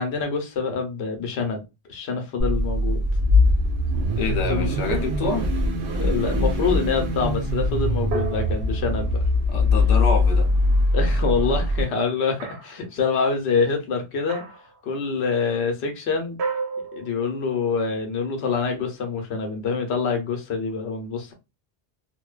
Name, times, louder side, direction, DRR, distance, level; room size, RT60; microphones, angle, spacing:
voice 1, 0.0-1.6 1.9-3.0 4.5-4.7 6.0-9.2 10.9-14.4 14.8-16.4 16.9-21.3, left 5 dB, 90° left, 0.9 m, -26 dB
Car / Idling / Accelerating revving vroom, 2.4-11.8, left 2 dB, 70° right, 1.2 m, -22 dB
voice 2, 4.2-5.4 9.5-10.5, left 3 dB, 45° left, 0.6 m, -27 dB
sound 1, 4.9-5.9 8.1-9.8 12.4-12.9 14.3-14.8 16.4-17.6, right 5 dB, 85° right, 1.0 m, -33 dB
2.6 x 2.1 x 2.2 m
omnidirectional pair, 1.1 m